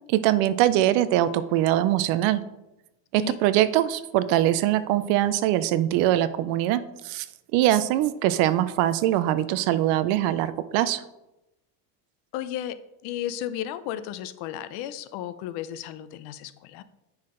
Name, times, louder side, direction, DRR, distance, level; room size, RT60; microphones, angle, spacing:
voice 1, 0.1-2.4 3.1-7.3 7.5-11.0, right 13 dB, 55° right, 14 dB, 0.5 m, -22 dB
voice 2, 12.3-16.8, left 11 dB, 50° left, 13 dB, 0.6 m, -34 dB
8.5 x 5.8 x 3.7 m, 0.93 s
cardioid pair, 155°, 49 cm